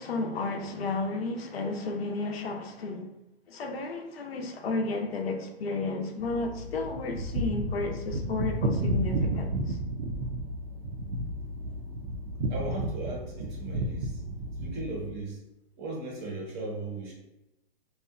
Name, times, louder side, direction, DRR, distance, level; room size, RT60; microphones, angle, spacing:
voice 1, 0.0-3.1 3.5-9.8, left 3 dB, 80° left, 0.6 m, -32 dB
sound 1, 6.2-15.1, right 1 dB, 75° right, 0.5 m, -32 dB
voice 2, 12.5-14.2 14.6-15.4 15.8-17.1, right 2 dB, 20° right, 0.6 m, -37 dB
2.7 x 2.2 x 2.3 m
hypercardioid pair, 145°, 30 cm